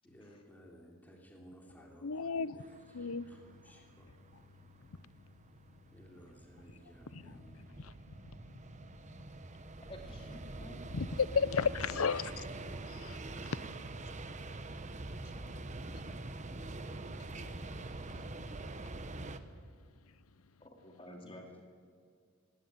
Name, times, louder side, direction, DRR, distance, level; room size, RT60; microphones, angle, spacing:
voice 1, 0.0-2.7 3.0-4.1 5.9-7.7 11.7-12.3, equal, 10° left, 3.1 m, -57 dB
voice 2, 2.0-2.7 2.9-3.3 7.1-7.9 10.9-12.4 12.9-13.2 13.5-13.6 15.9-16.2, left 5 dB, 80° left, 0.7 m, -34 dB
sound 1, 2.6-19.4, right 2 dB, 35° right, 1.1 m, -45 dB
voice 3, 9.8-10.8 20.6-21.6, left 1 dB, 25° left, 2.6 m, -51 dB
20.0 x 17.0 x 9.7 m
head